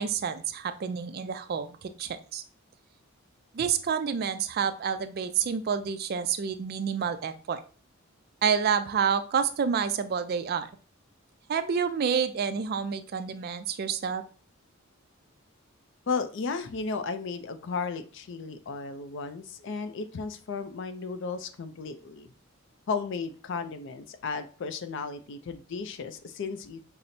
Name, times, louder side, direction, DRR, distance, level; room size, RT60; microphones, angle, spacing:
voice 1, 0.0-2.4 3.5-7.6 8.4-10.7 11.5-14.2, right 7 dB, 45° right, 10 dB, 0.3 m, -28 dB
voice 2, 16.1-22.3 22.9-26.8, left 4 dB, 60° left, 10 dB, 0.4 m, -34 dB
5.7 x 2.0 x 2.6 m, 0.38 s
head